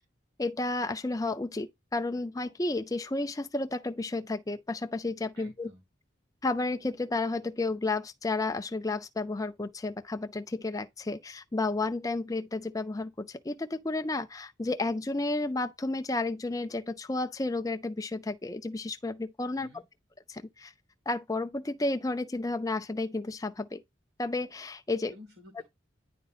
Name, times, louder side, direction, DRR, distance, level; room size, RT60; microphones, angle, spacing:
voice 1, 0.4-5.7 6.4-19.7 20.3-20.7 21.1-23.8 24.2-25.1, left 2 dB, 20° left, 0.5 m, -32 dB
voice 2, 5.3-5.8 19.5-19.8 25.1-25.6, left 2 dB, 55° right, 2.4 m, -52 dB
10.0 x 3.8 x 4.1 m
head